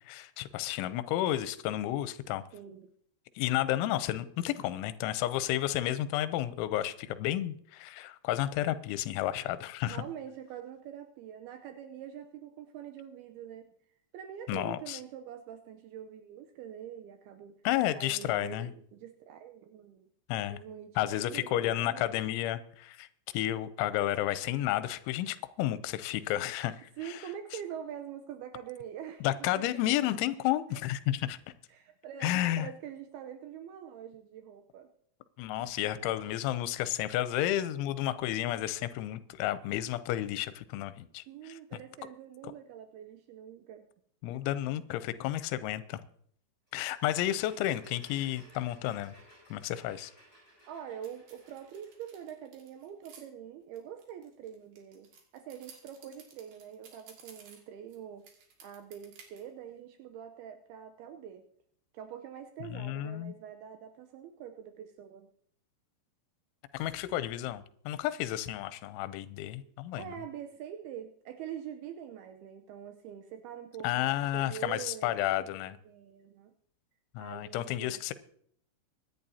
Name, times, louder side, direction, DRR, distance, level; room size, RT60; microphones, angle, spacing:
voice 1, 0.1-2.4 3.4-10.0 14.5-15.0 17.6-18.7 20.3-20.6 21.0-23.1 23.3-27.2 29.2-31.4 32.2-32.7 35.4-41.2 44.2-46.0 46.7-49.1 49.5-50.1 62.7-63.4 66.7-70.0 73.8-75.8 77.2-78.1, left 13 dB, 85° left, 14 dB, 3.0 m, -31 dB
voice 2, 2.5-2.9 9.8-13.7 14.1-17.6 17.9-20.1 20.5-22.2 27.0-29.3 29.6-30.2 30.7-30.8 31.7-34.9 35.6-36.1 41.3-43.9 50.7-58.3 58.6-61.5 61.9-65.3 70.0-75.2 75.9-76.5 77.2-78.0, right 9 dB, 85° right, 6 dB, 2.2 m, -45 dB
sound 1, 46.7-52.4, right 1 dB, 10° right, 7.0 m, -59 dB
sound 2, 51.0-53.2 53.7-58.0 58.2-59.4, right 6 dB, 55° right, 3.5 m, -55 dB
24.0 x 10.5 x 2.8 m, 0.64 s
omnidirectional pair, 5.4 m